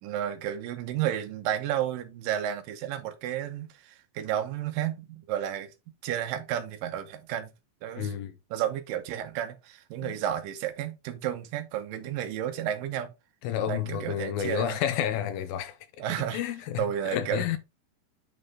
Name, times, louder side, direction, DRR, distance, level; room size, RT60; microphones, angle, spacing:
voice 1, 0.0-5.7 6.0-7.5 7.8-8.2 8.5-13.1 13.7-14.8 16.0-16.4 16.8-17.6, right 11 dB, 70° right, 2.3 m, -32 dB
voice 2, 8.0-8.3 10.0-10.1 13.4-15.8 16.3-16.9 17.1-17.6, left 10 dB, 80° left, 2.2 m, -30 dB
8.9 x 3.9 x 3.3 m
omnidirectional pair, 4.7 m